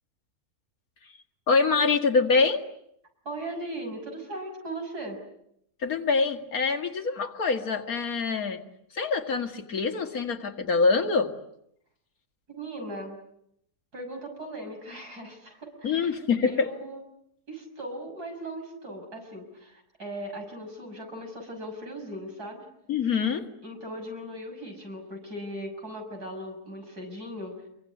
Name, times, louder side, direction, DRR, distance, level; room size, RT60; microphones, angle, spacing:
voice 1, 1.5-2.6 5.8-8.6 8.9-11.3 15.8-16.7 22.9-23.5, left 4 dB, 65° left, 6 dB, 2.3 m, -25 dB
voice 2, 3.2-5.2 12.5-13.2 13.9-16.2 16.4-17.0 17.5-22.6 23.6-27.6, right 1 dB, 80° right, 3 dB, 6.8 m, -38 dB
26.0 x 23.5 x 9.5 m, 0.76 s
omnidirectional pair, 1.6 m